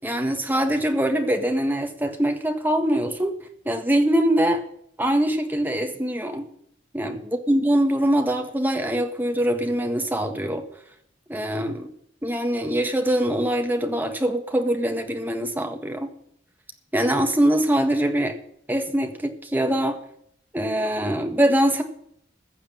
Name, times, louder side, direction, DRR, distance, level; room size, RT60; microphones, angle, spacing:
voice 1, 0.0-3.3 3.6-4.6 5.0-6.4 6.9-10.6 11.3-11.9 12.2-16.1 16.9-18.4 18.7-20.0 20.5-21.8, right 1 dB, 10° right, 4 dB, 1.5 m, -23 dB
15.0 x 6.5 x 9.0 m, 0.69 s
head